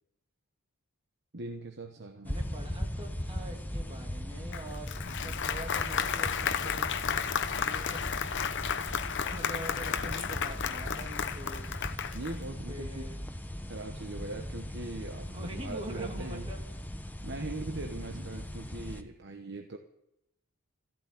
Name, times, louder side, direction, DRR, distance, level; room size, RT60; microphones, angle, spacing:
voice 1, 1.3-2.3 12.1-13.1 13.7-16.5 17.2-19.8, right 2 dB, 55° right, 4 dB, 1.1 m, -40 dB
sound 1, 2.2-19.0, equal, 10° left, 0.9 m, -39 dB
voice 2, 2.2-4.9 5.2-8.0 9.2-11.7 12.7-13.4 15.3-16.6, right 1 dB, 25° right, 1 dB, 2.7 m, -44 dB
Applause, 4.5-12.4, left 7 dB, 55° left, 0.8 m, -33 dB
15.0 x 12.0 x 7.8 m, 0.82 s
head